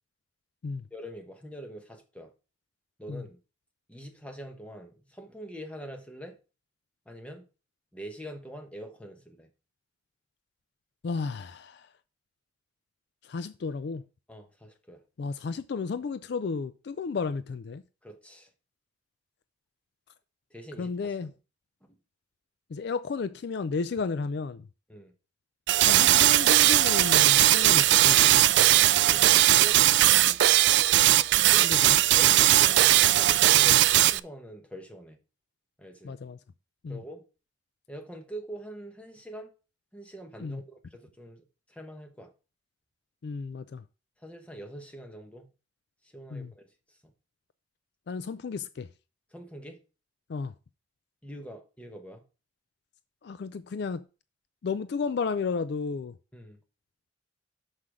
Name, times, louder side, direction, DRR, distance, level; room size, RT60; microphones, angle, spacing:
voice 1, 0.9-2.3 3.0-3.4 3.9-6.4 7.1-7.4 7.9-9.5 14.3-15.0 18.0-18.5 20.5-21.3 24.9-25.1 29.1-30.4 31.5-33.8 34.1-35.2 35.8-36.1 36.9-37.2 37.9-39.5 39.9-42.3 44.2-45.5 46.0-47.0 49.3-49.8 51.2-52.2 56.3-56.6, right 1 dB, 5° left, 1.1 m, -44 dB
voice 2, 11.0-11.9 13.3-14.0 15.2-17.8 20.8-21.3 22.7-24.6 25.8-28.7 31.6-32.0 33.6-33.8 36.0-36.4 36.8-37.0 40.4-40.6 43.2-43.8 46.3-46.5 48.1-48.9 50.3-50.5 53.2-54.0 54.6-56.1, left 4 dB, 55° left, 0.4 m, -33 dB
sound 1, 25.7-34.2, right 14 dB, 60° right, 0.3 m, -19 dB
6.4 x 5.7 x 4.9 m
head